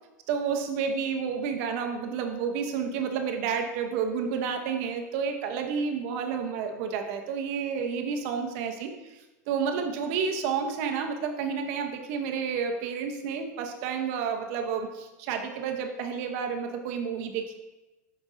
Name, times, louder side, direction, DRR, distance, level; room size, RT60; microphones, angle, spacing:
voice 1, 0.3-9.2 9.5-17.5, right 6 dB, 60° right, 4 dB, 0.9 m, -30 dB
8.1 x 5.2 x 2.7 m, 1.1 s
hypercardioid pair, 105°, 9 cm